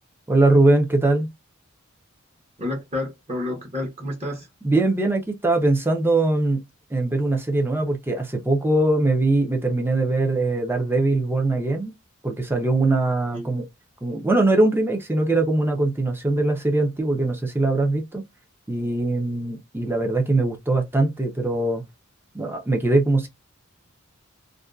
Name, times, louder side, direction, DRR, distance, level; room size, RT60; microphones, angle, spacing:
voice 1, 0.3-1.3 4.6-6.6 6.9-11.9 12.2-13.6 14.0-18.2 18.7-21.8 22.3-23.3, right 2 dB, 10° right, 0.5 m, -21 dB
voice 2, 2.6-4.5 13.3-13.5, left 1 dB, 30° right, 0.9 m, -30 dB
2.5 x 2.2 x 2.2 m
head